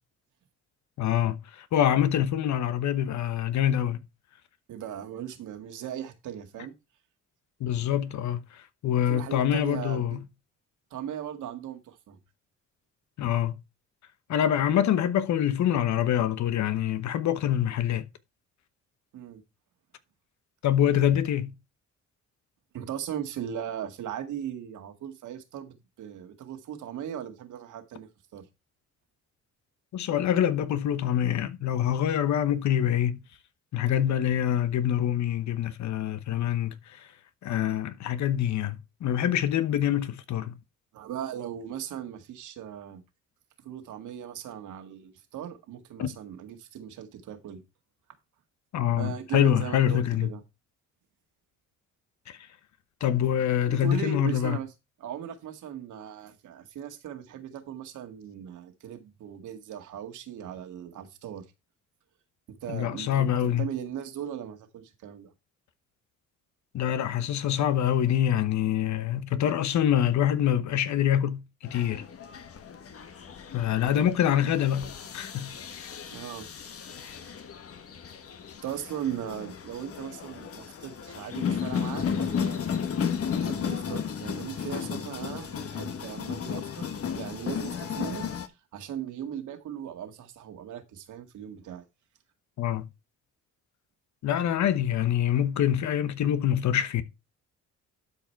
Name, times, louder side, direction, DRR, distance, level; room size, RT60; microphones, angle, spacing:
voice 1, 1.0-4.0 7.6-10.2 13.2-13.5 14.3-18.1 20.6-21.5 29.9-33.2 33.7-37.1 37.4-40.6 46.0-46.1 48.7-50.3 52.3-52.4 53.0-54.6 62.7-63.7 66.7-72.0 73.5-75.9 92.6-92.9 94.2-97.0, left 10 dB, 70° left, 1.0 m, -25 dB
voice 2, 4.7-6.7 9.1-10.2 10.9-12.2 19.1-19.4 22.7-28.5 40.9-43.0 43.6-47.6 49.0-50.4 53.7-54.7 55.0-61.5 62.5-65.3 73.8-74.1 76.1-76.5 78.6-82.6 83.3-88.3 88.7-91.9, right 9 dB, 80° right, 2.0 m, -38 dB
sound 1, 71.6-88.5, left 7 dB, 50° left, 1.3 m, -34 dB
12.0 x 4.9 x 4.6 m
cardioid pair, 90°, 30 cm